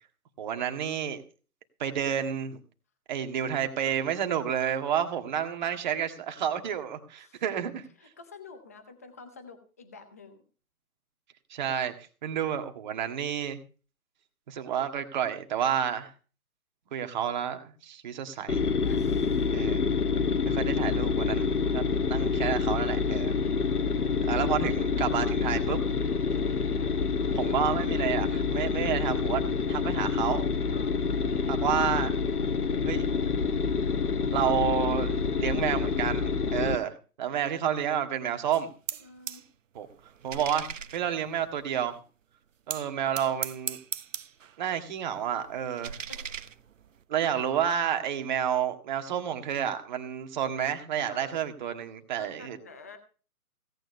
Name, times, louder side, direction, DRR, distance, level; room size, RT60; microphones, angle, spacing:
voice 1, 0.4-1.2 1.8-2.6 3.1-7.8 11.5-11.9 12.2-13.6 14.5-16.1 16.9-18.7 19.5-19.8 20.5-23.4 24.3-25.8 27.3-29.4 29.7-30.4 31.5-32.1 32.9-33.1 34.3-38.7 39.8-39.9 40.2-42.0 42.7-43.8 44.6-46.0 47.1-52.6, right 9 dB, 30° right, 7 dB, 1.8 m, -30 dB
voice 2, 8.0-10.4 18.8-19.5 30.7-31.0 37.2-37.8 39.0-39.4 46.1-46.4 51.1-51.4 52.2-53.0, left 4 dB, 10° left, 8 dB, 0.6 m, -49 dB
sound 1, 18.5-36.8, left 5 dB, 80° left, 1.5 m, -27 dB
sound 2, 38.5-39.5 39.7-42.0 42.7-44.6 44.9-47.0, right 8 dB, 55° right, 0.9 m, -39 dB
17.0 x 9.1 x 5.3 m, 0.36 s
hypercardioid pair, 155°, 45 cm